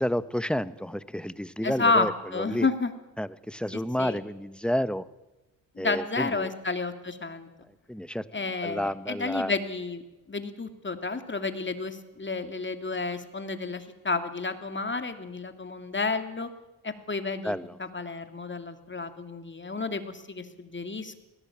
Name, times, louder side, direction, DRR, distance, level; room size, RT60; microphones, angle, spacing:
voice 1, 0.0-2.1 2.5-2.7 3.2-5.0 5.8-6.5 7.9-8.2 8.6-9.5 17.4-17.7, equal, ahead, 14 dB, 1.2 m, -30 dB
voice 2, 1.6-2.9 3.7-4.2 5.8-7.5 8.3-10.0 10.3-16.5 16.8-17.5 17.8-21.2, left 3 dB, 30° left, 8 dB, 2.9 m, -31 dB
20.5 x 18.0 x 8.8 m, 1.0 s
cardioid pair, 60°, 39 cm